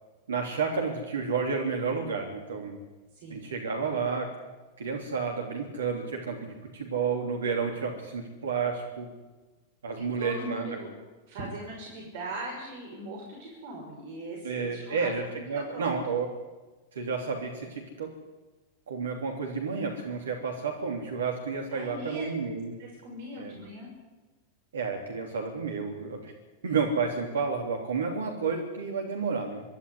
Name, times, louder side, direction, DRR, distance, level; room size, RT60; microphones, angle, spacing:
voice 1, 0.3-2.8 3.3-4.3 4.8-9.1 9.8-10.8 14.4-16.3 16.9-18.1 18.9-22.7 23.4-23.5 24.7-26.3 26.6-29.6, right 5 dB, 70° right, 2 dB, 3.1 m, -31 dB
voice 2, 3.1-3.5 10.2-10.9 11.3-15.9 21.7-22.3 22.8-23.9, right 1 dB, 50° right, 0 dB, 5.8 m, -40 dB
25.0 x 12.5 x 9.8 m, 1.2 s
figure-of-eight pair, 90°, 0 cm